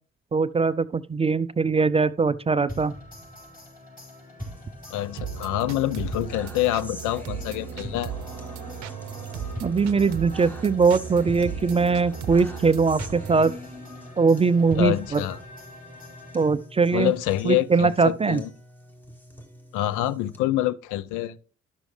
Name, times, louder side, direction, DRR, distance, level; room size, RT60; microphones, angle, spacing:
voice 1, 0.3-2.9 9.6-13.5 14.2-15.2 16.3-17.1 17.4-18.4, right 4 dB, 20° right, 0.4 m, -21 dB
sound 1, 2.7-16.8, equal, 25° left, 3.6 m, -42 dB
sound 2, 4.4-20.4, left 1 dB, 5° left, 1.2 m, -44 dB
voice 2, 4.9-8.1 14.7-15.4 16.9-18.5 19.7-21.4, left 14 dB, 65° left, 0.5 m, -26 dB
sound 3, 5.2-13.5, right 8 dB, 55° right, 0.7 m, -37 dB
11.5 x 6.2 x 3.2 m
hypercardioid pair, 45°, 33 cm